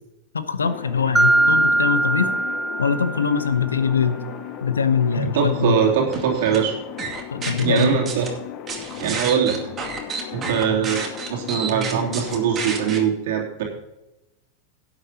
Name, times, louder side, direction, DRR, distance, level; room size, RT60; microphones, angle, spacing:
voice 1, 0.3-2.3 2.8-4.2 4.6-5.8 7.3-8.1, left 6 dB, 85° left, 12 dB, 0.9 m, -22 dB
sound 1, 0.6-13.0, left 10 dB, 45° left, 0.9 m, -36 dB
Mallet percussion, 1.2-3.7, right 2 dB, 10° right, 0.7 m, -21 dB
voice 2, 5.1-6.7 7.5-8.3 9.0-9.6 10.3-11.0 11.3-13.6, right 7 dB, 65° right, -1 dB, 3.0 m, -22 dB
sound 2, 6.1-6.6 7.0-8.3 8.7-13.0, right 5 dB, 30° right, 2.4 m, -30 dB
17.5 x 7.9 x 2.9 m, 0.96 s
hypercardioid pair, 95°, 0 cm